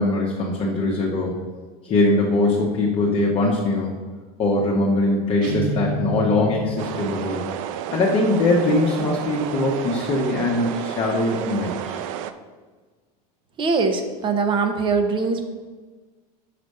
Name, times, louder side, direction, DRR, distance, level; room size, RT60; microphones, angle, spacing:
voice 1, 0.0-1.3 1.8-3.9 4.4-7.4 7.9-12.0, left 2 dB, 30° left, -2 dB, 1.1 m, -21 dB
sound 1, 5.4-7.5, right 1 dB, 45° right, 1.5 m, -29 dB
sound 2, 6.8-12.3, right 10 dB, 65° right, 0.5 m, -31 dB
voice 2, 13.6-15.4, right 4 dB, 25° right, 7 dB, 0.9 m, -22 dB
5.9 x 5.0 x 6.5 m, 1.4 s
supercardioid pair, 145°, 19 cm